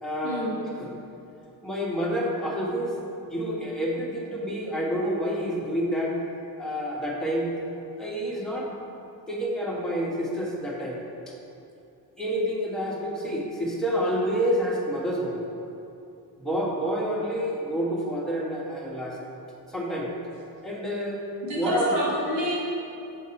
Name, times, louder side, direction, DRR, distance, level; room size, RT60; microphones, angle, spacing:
voice 1, 0.0-0.5 0.8-0.9 1.6-2.9 3.3-6.1 6.6-7.5 8.0-8.7 9.3-11.0 12.2-15.5 16.4-19.2 19.7-20.1 20.6-21.2 21.5-21.9, equal, ahead, -5 dB, 1.3 m, -28 dB
voice 2, 21.4-22.6, equal, 90° right, -5 dB, 1.5 m, -28 dB
5.5 x 3.5 x 5.7 m, 2.8 s
cardioid pair, 80°, 43 cm